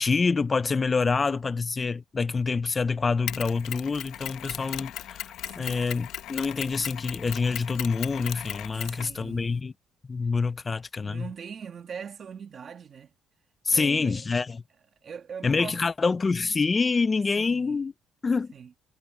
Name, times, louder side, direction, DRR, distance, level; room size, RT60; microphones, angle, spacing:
voice 1, 0.0-9.7 10.1-11.3 13.6-14.6 15.4-17.9 18.2-18.5, left 4 dB, 20° left, 0.4 m, -26 dB
Mechanisms, 3.3-9.6, left 12 dB, 70° left, 0.8 m, -38 dB
voice 2, 5.4-5.8 8.7-9.5 11.0-13.1 13.7-14.2 15.0-15.8 17.3-17.8 18.5-18.7, right 7 dB, 35° right, 1.6 m, -41 dB
cardioid pair, 170°, 0 cm